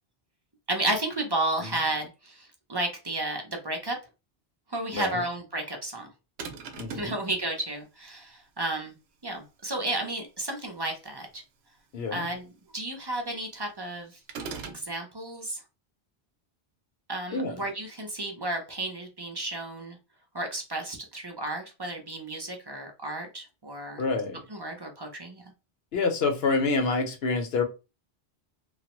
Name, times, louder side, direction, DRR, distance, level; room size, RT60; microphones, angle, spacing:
voice 1, 0.7-4.0 4.7-6.1 6.9-8.9 9.2-11.4 12.1-12.5 12.7-14.2 14.6-15.6 17.1-20.0 20.3-24.0 24.5-25.4, right 1 dB, 30° right, 2 dB, 0.5 m, -32 dB
voice 2, 4.9-5.2 6.7-7.2 11.9-12.3 17.3-17.6 24.0-24.4 25.9-27.6, left 4 dB, 70° left, 5 dB, 1.0 m, -27 dB
sound 1, 6.4-7.2 14.3-14.9, right 5 dB, 75° right, 0.8 m, -38 dB
3.1 x 2.1 x 2.9 m, 0.28 s
omnidirectional pair, 1.1 m